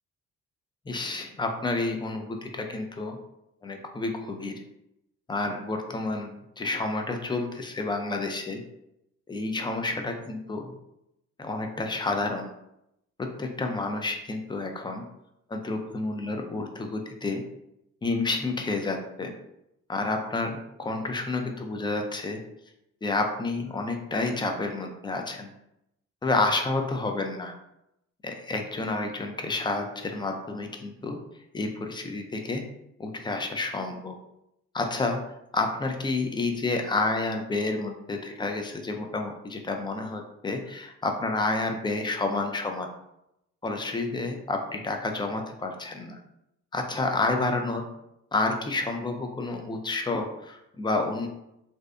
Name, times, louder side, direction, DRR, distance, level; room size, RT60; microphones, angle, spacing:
voice 1, 0.9-3.2 3.6-4.5 5.3-8.6 9.3-10.7 11.4-12.5 13.2-15.0 15.5-17.4 18.0-19.3 19.9-22.4 23.0-25.5 26.2-27.5 28.2-31.2 31.5-32.6 33.0-34.2 34.7-35.2 35.5-42.9 43.6-46.2 46.7-47.9 48.3-51.3, left 3 dB, 15° left, 4 dB, 0.3 m, -29 dB
2.6 x 2.1 x 2.4 m, 0.83 s
cardioid pair, 90°, 30 cm